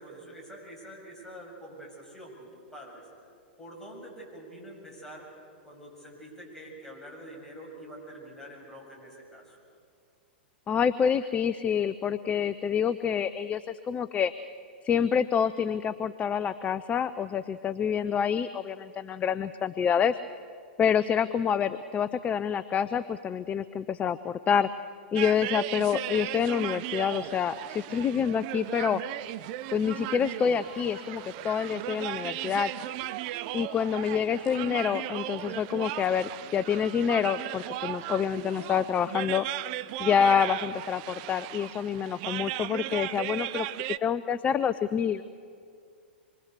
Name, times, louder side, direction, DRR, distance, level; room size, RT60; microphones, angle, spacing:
voice 1, 0.0-3.0 3.6-5.3 5.6-9.6, right 1 dB, 10° left, -2 dB, 7.7 m, -46 dB
voice 2, 10.7-14.3 14.8-20.2 20.8-24.7 25.1-29.0 29.7-32.7 33.5-39.5 40.0-43.7 44.0-45.2, left 7 dB, 25° left, 14 dB, 0.6 m, -27 dB
sound 1, 25.2-44.0, right 15 dB, 50° right, 0.7 m, -36 dB
26.0 x 23.5 x 6.8 m, 2.3 s
hypercardioid pair, 110°, 6 cm